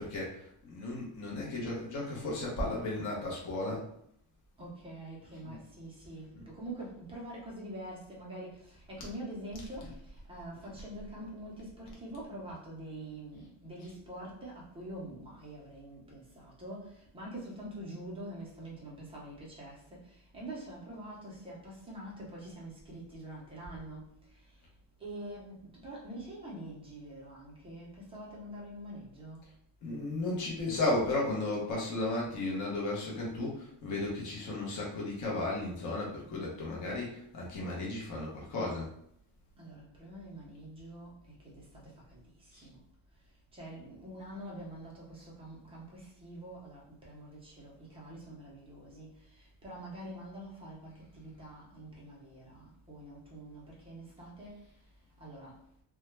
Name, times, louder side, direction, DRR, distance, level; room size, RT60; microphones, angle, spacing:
voice 1, 0.0-3.8 5.4-5.6 6.3-6.4 9.9-10.0 29.8-38.9 42.5-42.7, left 2 dB, 35° left, -3 dB, 0.7 m, -34 dB
voice 2, 4.6-10.0 10.3-20.0 20.3-24.1 25.0-29.4 39.6-42.2 42.6-42.8 43.5-49.2 49.6-54.5 55.2-55.6, right 1 dB, 10° right, -4 dB, 0.5 m, -45 dB
2.2 x 2.1 x 3.0 m, 0.68 s
cardioid pair, 170°, 50 cm